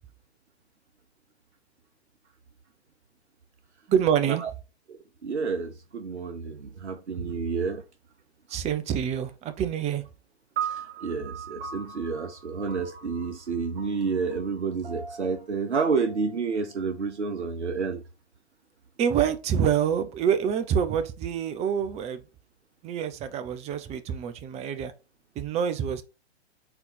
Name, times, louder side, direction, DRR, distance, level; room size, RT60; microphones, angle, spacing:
voice 1, 3.9-4.4 8.5-10.0 19.0-22.2 22.8-24.9 25.4-26.0, right 8 dB, 20° right, 0.6 m, -26 dB
voice 2, 5.2-7.8 10.6-18.0, right 5 dB, 80° right, 0.7 m, -30 dB
sound 1, 10.6-17.0, right 8 dB, 60° right, 1.3 m, -39 dB
4.5 x 4.0 x 5.5 m
figure-of-eight pair, 110°, 34 cm